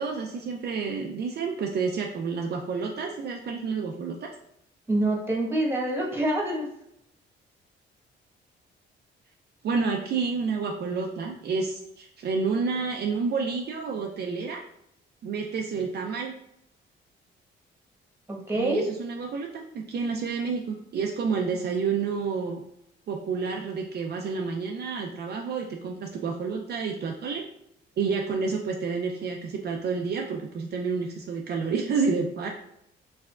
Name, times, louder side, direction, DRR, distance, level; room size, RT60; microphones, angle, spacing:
voice 1, 0.0-4.3 9.6-14.6 15.2-16.3 18.5-22.6 23.1-27.4 28.0-32.5, right 5 dB, 55° right, 1 dB, 0.5 m, -29 dB
voice 2, 4.9-6.7 18.3-18.8, right 1 dB, 10° right, -2 dB, 1.3 m, -26 dB
4.5 x 3.4 x 2.4 m, 0.77 s
cardioid pair, 90°, 20 cm